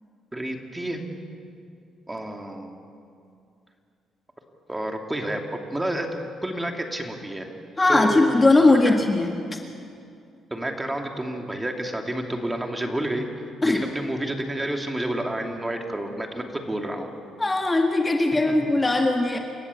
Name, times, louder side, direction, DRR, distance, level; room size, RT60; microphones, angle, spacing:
voice 1, 0.3-1.0 2.1-2.8 4.7-5.4 5.7-7.5 7.9-9.0 10.5-17.1, right 1 dB, 15° right, 3 dB, 2.7 m, -30 dB
voice 2, 7.8-9.4 13.6-13.8 17.4-19.4, left 2 dB, 20° left, 3 dB, 1.9 m, -19 dB
28.5 x 15.0 x 8.5 m, 2.4 s
cardioid pair, 90°, 0 cm